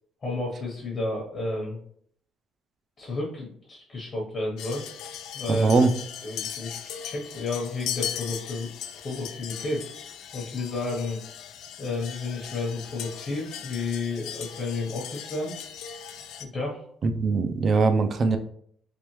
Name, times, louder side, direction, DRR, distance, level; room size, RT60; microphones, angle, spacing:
voice 1, 0.2-1.8 3.0-4.9 5.3-5.7 6.2-8.7 9.0-9.8 10.3-11.2 11.8-15.5 16.4-16.8, left 3 dB, 35° left, -3 dB, 0.8 m, -31 dB
sound 1, 4.6-16.4, left 9 dB, 90° left, 0.3 m, -38 dB
voice 2, 5.5-5.9 17.0-18.4, right 4 dB, 35° right, 8 dB, 0.3 m, -21 dB
3.4 x 3.4 x 3.0 m, 0.65 s
cardioid pair, 160°, 0 cm